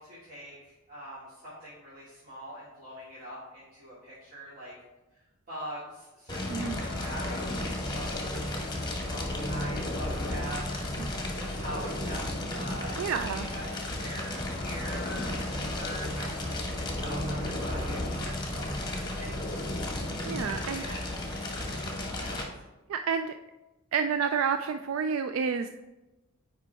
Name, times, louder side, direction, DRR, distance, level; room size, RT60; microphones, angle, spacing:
voice 1, 0.0-4.7 5.1-5.2 5.5-12.2 12.5-13.7 14.0-19.5 20.6-21.1 21.6-22.6, right 1 dB, 45° right, -11 dB, 2.3 m, -43 dB
Fire, 6.3-22.4, left 1 dB, 20° left, 1.2 m, -33 dB
voice 2, 6.5-6.8 13.0-13.5 20.3-20.8 22.9-23.3 23.9-25.7, right 6 dB, 70° right, 8 dB, 0.3 m, -29 dB
8.8 x 5.0 x 3.4 m, 1.0 s
head